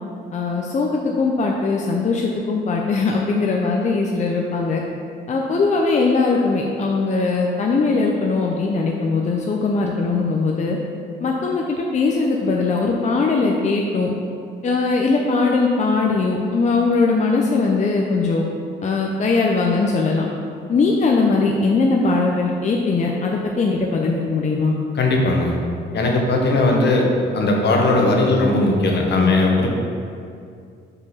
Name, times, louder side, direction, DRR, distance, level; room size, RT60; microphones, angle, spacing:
voice 1, 0.3-4.8 5.3-10.8 11.2-14.1 14.6-18.4 18.8-20.3 20.7-24.7, left 3 dB, 35° left, 0 dB, 0.6 m, -20 dB
voice 2, 24.9-25.6 25.9-27.1 27.3-29.7, left 2 dB, 60° left, 0 dB, 1.2 m, -18 dB
4.9 x 4.6 x 5.5 m, 2.4 s
cardioid pair, 90°, 20 cm